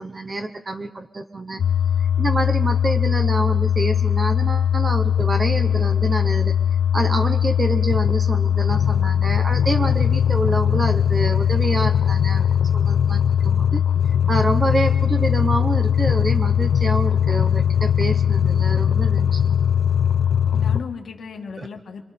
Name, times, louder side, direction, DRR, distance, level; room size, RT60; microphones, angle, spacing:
voice 1, 0.0-1.6 2.2-6.5 6.9-12.5 12.7-19.5, right 2 dB, 30° right, 6 dB, 1.0 m, -27 dB
sound 1, 1.6-20.8, left 9 dB, 90° left, 0.8 m, -20 dB
voice 2, 9.3-9.7 20.5-22.0, left 5 dB, 70° left, 3 dB, 2.1 m, -36 dB
27.5 x 24.0 x 4.4 m, 1.0 s
wide cardioid pair, 135°, 0 cm